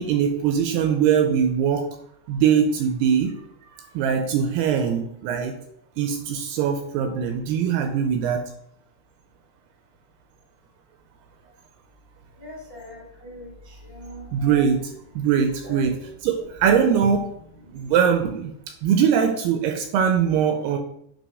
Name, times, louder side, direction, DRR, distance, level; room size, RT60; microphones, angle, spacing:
voice 1, 0.0-1.9 2.3-3.4 3.7-5.5 6.0-8.5 14.3-17.3 17.7-18.5 18.8-20.8, right 7 dB, 80° right, 5 dB, 2.4 m, -22 dB
voice 2, 12.4-14.3 15.6-15.8 17.7-17.8, left 1 dB, 20° left, -3 dB, 0.6 m, -41 dB
8.8 x 2.9 x 5.4 m, 0.71 s
omnidirectional pair, 5.0 m